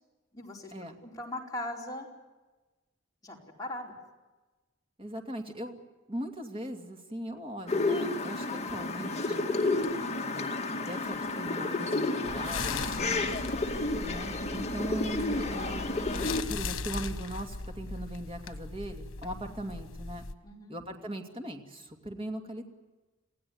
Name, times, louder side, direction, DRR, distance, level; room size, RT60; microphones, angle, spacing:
voice 1, 0.3-0.7 1.0-2.1 3.2-4.0 20.4-20.8, left 1 dB, 20° left, -2 dB, 4.6 m, -39 dB
voice 2, 5.0-5.8 6.1-9.5 10.3-10.5 10.8-13.2 14.0-15.9 16.5-20.3 20.7-22.6, right 1 dB, 30° right, 3 dB, 2.7 m, -39 dB
sound 1, 7.7-16.4, left 2 dB, 35° left, 2.3 m, -31 dB
sound 2, 12.2-20.3, left 4 dB, 90° left, 1.3 m, -39 dB
27.5 x 16.5 x 9.5 m, 1.2 s
head